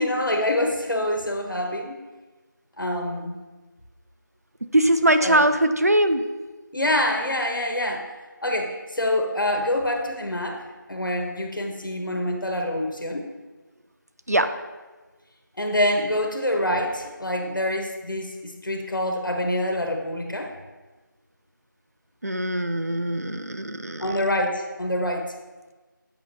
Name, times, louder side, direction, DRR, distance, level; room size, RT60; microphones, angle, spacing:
voice 1, 0.0-2.0 2.8-3.4 5.2-5.5 6.7-8.0 8.4-10.6 10.9-13.2 15.6-20.5 24.0-25.2, left 1 dB, 70° left, 2 dB, 1.1 m, -26 dB
voice 2, 4.7-6.2 14.3-14.5 22.2-24.0, right 1 dB, 50° right, 9 dB, 0.4 m, -21 dB
8.5 x 5.2 x 2.8 m, 1.3 s
figure-of-eight pair, 175°, 11 cm